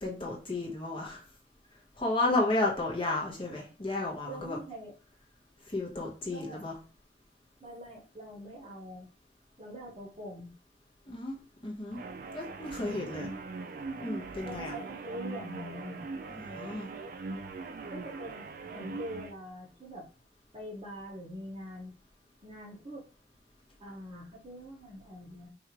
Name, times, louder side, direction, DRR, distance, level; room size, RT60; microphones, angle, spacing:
voice 1, 0.0-1.2 2.0-4.6 5.7-6.7 11.1-11.4 11.6-12.0 12.3-13.3 14.0-14.7 16.3-16.9, left 2 dB, 30° left, -2 dB, 1.1 m, -32 dB
voice 2, 4.3-4.9 6.3-6.7 7.6-9.1 9.6-10.5 12.8-13.1 14.4-16.0 17.9-20.1 20.5-21.9 22.4-23.1 23.8-25.5, equal, 35° right, -3 dB, 1.2 m, -44 dB
sound 1, 11.9-19.3, right 3 dB, 50° right, 0.4 m, -41 dB
4.6 x 2.8 x 2.9 m, 0.35 s
head